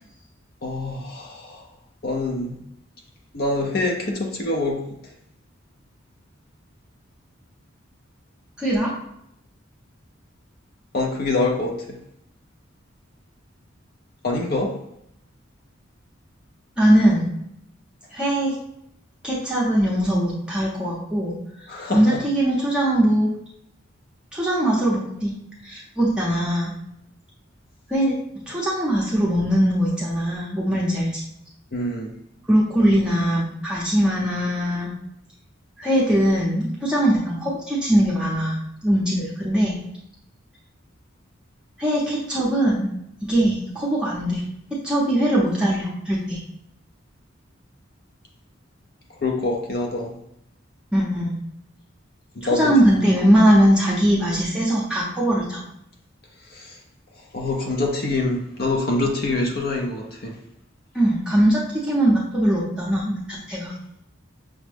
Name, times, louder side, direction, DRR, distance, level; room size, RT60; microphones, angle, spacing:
voice 1, 0.6-1.7 2.0-2.6 3.3-4.8 10.9-12.0 14.2-14.8 21.7-22.2 31.7-32.2 49.2-50.2 52.4-52.8 56.5-56.8 57.3-60.4, left 2 dB, 50° left, 1 dB, 0.5 m, -25 dB
voice 2, 8.6-8.9 16.8-17.3 18.1-18.6 19.2-21.4 21.9-23.3 24.3-25.3 25.6-26.7 27.9-28.1 28.5-31.2 32.5-34.9 35.8-38.6 38.8-39.8 41.8-42.9 43.2-44.4 44.8-46.4 50.9-51.3 52.5-55.6 60.9-63.7, right 1 dB, 5° right, -6 dB, 0.6 m, -21 dB
5.9 x 2.1 x 3.3 m, 0.77 s
head